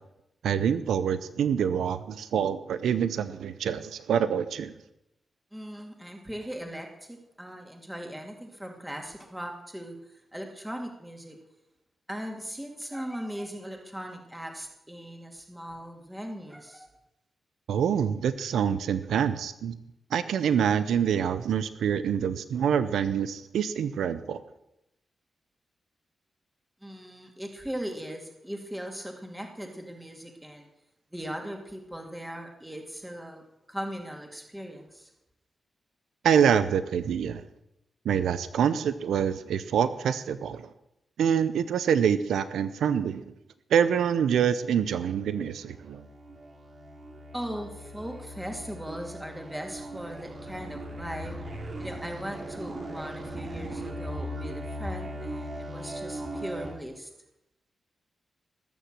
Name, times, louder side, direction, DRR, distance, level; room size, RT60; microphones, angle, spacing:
voice 1, 0.4-4.7 17.7-19.8 20.1-24.4 36.2-37.4 38.0-40.7 41.2-43.2 43.7-46.0, right 8 dB, 85° right, 13 dB, 0.6 m, -26 dB
voice 2, 5.5-11.4 12.1-16.9 26.8-30.7 31.1-33.4 33.7-35.1 47.3-51.4 51.8-57.1, equal, 10° right, 2 dB, 2.4 m, -39 dB
sound 1, 45.4-56.8, equal, 55° right, 2.7 m, -39 dB
19.0 x 7.1 x 7.5 m, 0.88 s
cardioid pair, 50°, 0 cm